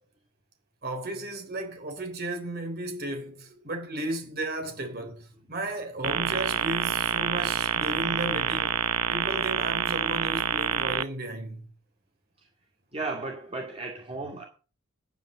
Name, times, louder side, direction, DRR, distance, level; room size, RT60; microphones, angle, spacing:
voice 1, 0.8-8.8 9.1-11.7, right 2 dB, 45° right, 3.6 m, -34 dB
sound 1, 6.0-11.0, right 8 dB, 90° right, 0.9 m, -27 dB
voice 2, 7.9-8.6 12.4-12.5 12.9-14.4, right 3 dB, 25° right, 2.3 m, -37 dB
10.5 x 9.3 x 6.8 m
head